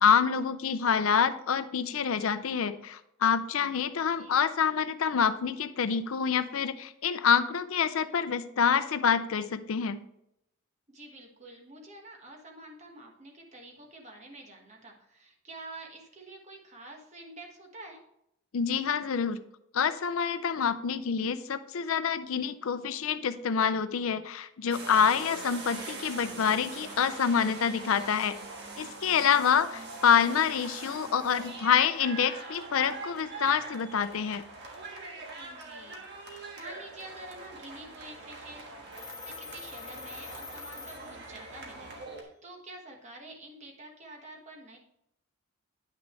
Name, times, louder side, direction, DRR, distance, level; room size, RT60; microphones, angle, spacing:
voice 1, 0.0-10.0 18.5-19.4 19.7-28.4 28.8-34.4, left 7 dB, 75° left, 12 dB, 0.5 m, -27 dB
voice 2, 4.1-4.4 10.9-18.0 29.1-29.5 35.3-36.1 36.3-44.8, right 2 dB, 35° right, 1 dB, 1.4 m, -48 dB
sound 1, 24.7-42.2, right 3 dB, 50° right, 1.4 m, -43 dB
Telephone, 38.9-41.7, left 5 dB, 15° left, 0.4 m, -45 dB
9.4 x 6.2 x 3.2 m, 0.79 s
head